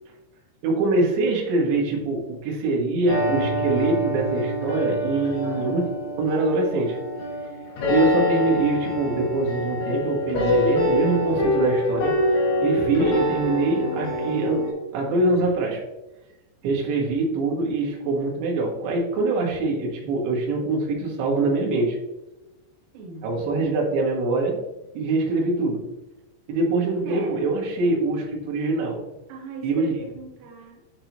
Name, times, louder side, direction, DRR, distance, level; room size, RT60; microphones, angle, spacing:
voice 1, 0.6-5.9 6.2-7.0 7.9-12.1 12.6-14.7 14.9-15.8 16.6-22.0 23.2-24.6 24.9-25.8 26.5-29.0 29.6-29.9, right 2 dB, 70° right, -2 dB, 3.8 m, -24 dB
sound 1, 3.1-14.7, left 1 dB, 55° left, 4.9 m, -25 dB
voice 2, 5.4-5.9 22.9-23.3 27.0-27.5 29.3-30.8, right 3 dB, 90° right, -1 dB, 3.9 m, -38 dB
8.8 x 6.7 x 3.0 m, 0.99 s
omnidirectional pair, 5.7 m